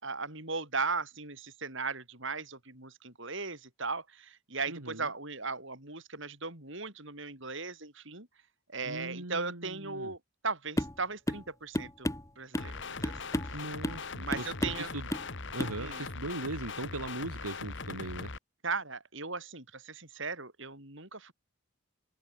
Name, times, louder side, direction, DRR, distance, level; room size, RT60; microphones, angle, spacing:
voice 1, 0.0-8.3 8.7-10.2 10.4-12.1 12.4-13.2 13.5-13.6 14.2-14.9 15.8-16.0 18.6-21.3, right 4 dB, 55° right, 5.5 m, -37 dB
voice 2, 4.7-5.1 8.8-10.1 13.5-15.1 15.5-18.3, right 2 dB, 85° right, 3.3 m, -39 dB
sound 1, 10.8-11.0 11.3-11.5 11.7-12.7 13.0-13.6 13.8-14.0 14.3-14.8 15.1-15.3 15.6-15.8, left 1 dB, 15° left, 1.8 m, -33 dB
sound 2, 12.6-18.4, left 4 dB, 55° left, 1.9 m, -40 dB
open air
head